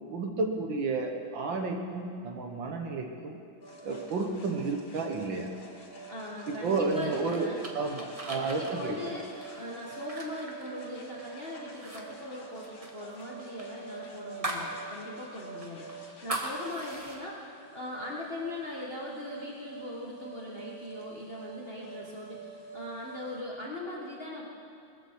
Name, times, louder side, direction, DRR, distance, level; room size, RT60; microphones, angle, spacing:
voice 1, 0.0-3.4 3.8-5.5 6.6-9.1, right 3 dB, 65° right, 3 dB, 2.0 m, -31 dB
sound 1, 3.6-23.4, right 4 dB, 70° left, 2.9 m, -47 dB
voice 2, 6.1-7.6 8.3-24.5, left 1 dB, 30° left, -4 dB, 1.6 m, -40 dB
sound 2, 6.7-11.3 11.7-12.0 12.3-14.7 15.1-15.2 15.6-17.2, right 1 dB, 20° right, 1.2 m, -39 dB
20.0 x 14.0 x 4.7 m, 2.5 s
omnidirectional pair, 2.3 m